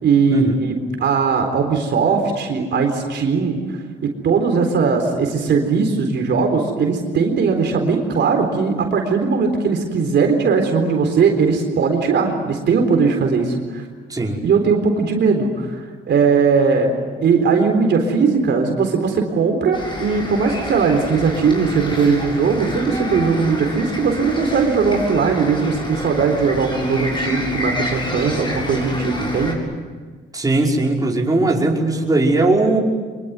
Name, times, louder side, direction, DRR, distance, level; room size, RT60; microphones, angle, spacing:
voice 1, 0.0-3.6 4.0-13.8 14.4-15.8 16.1-16.9 17.2-29.6, right 5 dB, 60° right, 3 dB, 4.0 m, -19 dB
voice 2, 14.1-14.4 30.3-32.8, right 2 dB, 20° right, -1 dB, 5.4 m, -18 dB
sound 1, 19.7-29.5, left 1 dB, 25° left, 7.8 m, -29 dB
25.0 x 23.0 x 9.6 m, 1.5 s
cardioid pair, 90°, 20 cm